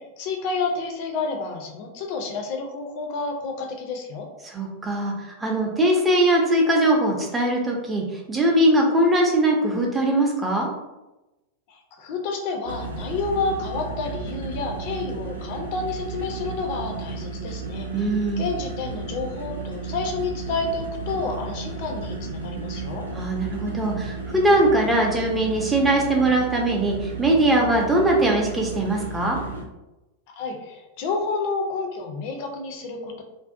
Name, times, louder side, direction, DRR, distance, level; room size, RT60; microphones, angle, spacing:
voice 1, 0.0-4.3 11.7-18.1 18.4-23.1 30.4-33.2, left 4 dB, 45° left, 3 dB, 0.4 m, -30 dB
voice 2, 4.5-5.1 5.4-10.7 17.9-18.4 23.1-29.4, right 1 dB, 10° right, 0 dB, 0.6 m, -21 dB
sound 1, 12.6-29.6, right 3 dB, 80° right, 0.5 m, -33 dB
2.5 x 2.0 x 2.4 m, 0.99 s
figure-of-eight pair, 90°, 0 cm